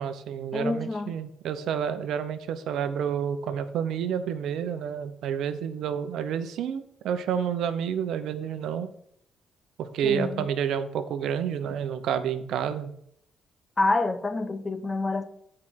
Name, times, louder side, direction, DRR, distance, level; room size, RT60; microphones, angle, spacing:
voice 1, 0.0-8.9 9.8-12.9, right 8 dB, 80° right, 0.8 m, -29 dB
voice 2, 0.5-1.1 10.0-10.5 13.8-15.2, left 2 dB, 25° left, 1.0 m, -27 dB
8.7 x 5.0 x 5.8 m
cardioid pair, 90°, 0 cm